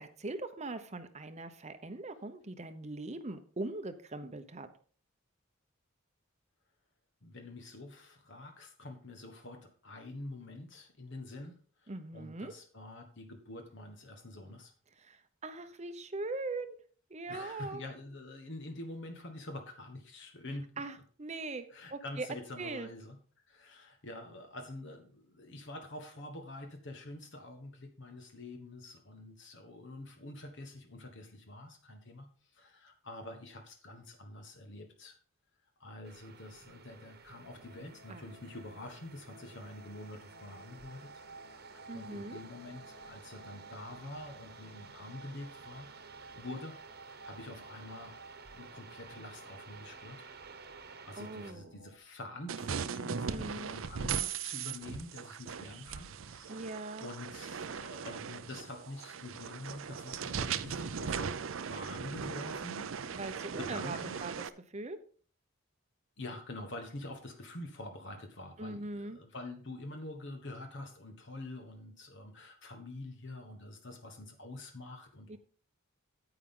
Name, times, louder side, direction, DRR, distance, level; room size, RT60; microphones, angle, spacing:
voice 1, 0.0-4.7 11.9-12.5 15.0-16.8 17.1-17.8 20.8-22.3 22.6-22.9 38.1-38.3 41.9-42.4 51.2-51.8 53.2-53.8 56.5-57.1 63.1-64.4 64.7-65.0 68.6-69.2 75.3-75.4, right 2 dB, 30° right, 10 dB, 0.8 m, -41 dB
voice 2, 7.2-14.7 17.3-20.7 21.7-23.2 23.5-32.3 32.5-35.2 35.8-41.1 41.5-45.9 46.2-46.8 47.1-48.2 48.5-50.3 51.0-61.3 61.7-63.2 63.6-64.2 66.2-75.4, left 2 dB, 60° left, 5 dB, 1.4 m, -46 dB
sound 1, 36.0-51.5, right 5 dB, 50° right, 1.2 m, -54 dB
sound 2, 37.5-52.0, right 2 dB, 85° right, 1.1 m, -55 dB
sound 3, 52.5-64.5, right 6 dB, 70° right, 0.6 m, -39 dB
9.5 x 9.0 x 3.8 m, 0.43 s
head